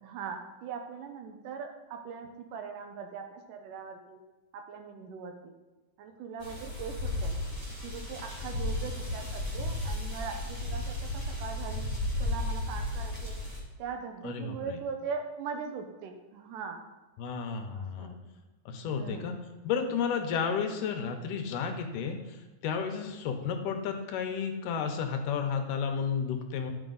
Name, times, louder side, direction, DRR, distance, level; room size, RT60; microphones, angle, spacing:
voice 1, 0.0-4.2 4.5-5.5 6.0-7.4 7.8-11.9 12.2-13.4 13.8-16.8 17.8-18.2 18.8-19.3 22.9-23.0, right 6 dB, 85° right, 5 dB, 2.4 m, -40 dB
sound 1, 6.4-13.6, left 1 dB, 15° right, 1.3 m, -34 dB
voice 2, 14.2-14.8 17.2-18.1 18.7-19.3 19.6-26.7, left 6 dB, 85° left, 5 dB, 2.4 m, -32 dB
11.0 x 5.4 x 3.9 m, 1.2 s
omnidirectional pair, 3.7 m